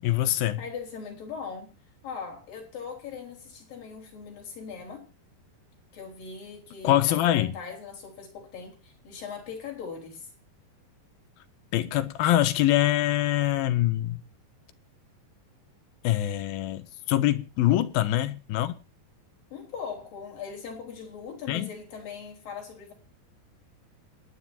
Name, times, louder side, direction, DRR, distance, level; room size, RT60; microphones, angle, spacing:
voice 1, 0.0-0.6 6.8-7.5 11.7-14.2 16.0-18.7 21.5-21.7, left 14 dB, 75° left, 2.4 m, -24 dB
voice 2, 0.6-1.7 2.0-5.1 5.9-10.3 17.7-17.8 19.5-22.9, left 6 dB, 55° left, 5.9 m, -40 dB
28.0 x 9.9 x 2.8 m
omnidirectional pair, 4.8 m